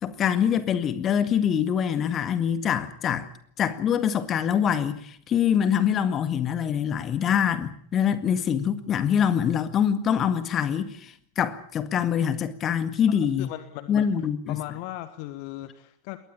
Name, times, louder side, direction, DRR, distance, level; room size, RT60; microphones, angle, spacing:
voice 1, 0.0-3.3 3.6-13.5 13.9-14.6, left 8 dB, 30° left, 1.9 m, -24 dB
voice 2, 13.1-14.1 14.5-16.2, left 16 dB, 45° left, 1.3 m, -37 dB
22.0 x 19.0 x 9.0 m
figure-of-eight pair, 90°, 0 cm